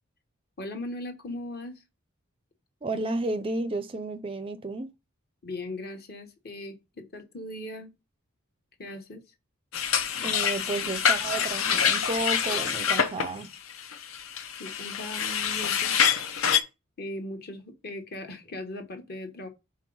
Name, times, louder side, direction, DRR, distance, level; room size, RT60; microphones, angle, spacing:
voice 1, 0.6-1.8 5.4-7.9 8.8-9.2 14.6-16.0 17.0-19.5, left 1 dB, 50° left, 1.1 m, -38 dB
voice 2, 2.8-4.9 10.2-13.5, right 2 dB, 25° right, 0.4 m, -32 dB
sound 1, 9.7-16.6, left 7 dB, 75° left, 0.7 m, -26 dB
4.6 x 3.8 x 5.3 m
head